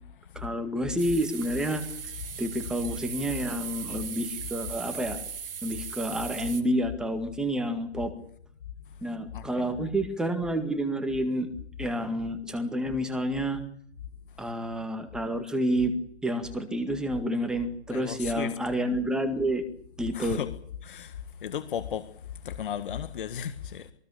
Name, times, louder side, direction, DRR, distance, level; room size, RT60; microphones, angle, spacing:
voice 1, 0.4-1.8 2.4-5.2 5.6-8.1 9.0-11.5 11.8-13.6 14.4-15.9 16.2-19.6 20.0-20.4, right 1 dB, ahead, 1.9 m, -29 dB
sound 1, 1.0-6.6, right 7 dB, 55° right, 3.4 m, -38 dB
voice 2, 9.3-9.8 17.9-18.5 20.1-20.5 20.8-21.1 21.4-22.1 22.4-23.9, left 8 dB, 50° left, 1.7 m, -35 dB
23.0 x 20.0 x 8.4 m
hypercardioid pair, 155°, 34 cm